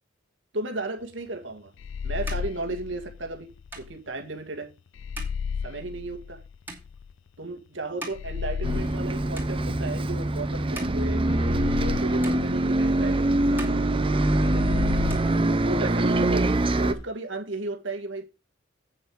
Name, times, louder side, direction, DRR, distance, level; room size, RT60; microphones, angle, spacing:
voice 1, 0.5-1.7 2.0-3.5 3.8-4.7 5.6-6.4 7.4-11.2 11.8-13.9 14.4-14.7 15.5-18.3, right 2 dB, 70° right, 1.8 m, -35 dB
sound 1, 1.4-9.1 9.3-10.0 10.5-12.0 12.2-13.1 13.4-14.6 14.9-16.0, right 2 dB, 10° right, 2.6 m, -45 dB
sound 2, 1.8-3.9 5.0-7.1 8.1-10.5 11.3-13.5 14.5-16.6, left 6 dB, 75° left, 0.4 m, -34 dB
Bus, 8.6-16.9, right 2 dB, 25° right, 0.7 m, -24 dB
8.7 x 6.7 x 4.7 m
head